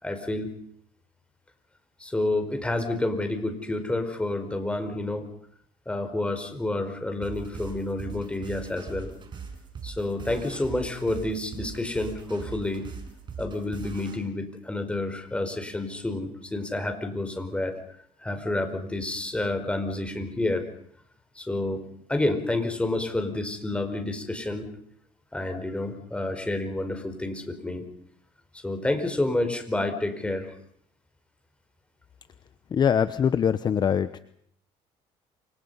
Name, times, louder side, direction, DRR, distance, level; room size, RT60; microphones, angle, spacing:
voice 1, 0.0-0.5 2.0-5.3 5.8-9.1 9.8-12.9 13.4-17.7 18.2-20.7 21.3-21.8 22.1-24.7 25.3-27.9 28.5-30.5, left 2 dB, 10° left, 7 dB, 4.8 m, -29 dB
sound 1, 7.2-14.2, right 6 dB, 40° right, 6.5 m, -40 dB
voice 2, 32.7-34.2, left 8 dB, 35° left, 13 dB, 0.9 m, -23 dB
29.5 x 25.5 x 5.6 m, 0.66 s
cardioid pair, 130°, 12 cm